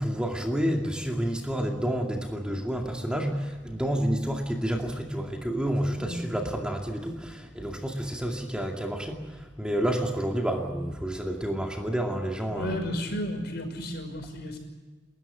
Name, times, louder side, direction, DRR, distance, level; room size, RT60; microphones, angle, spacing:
voice 1, 0.0-12.8, equal, 5° right, 2 dB, 2.4 m, -29 dB
voice 2, 12.5-14.6, left 1 dB, 60° left, 5 dB, 5.7 m, -33 dB
30.0 x 14.0 x 9.0 m, 1.4 s
head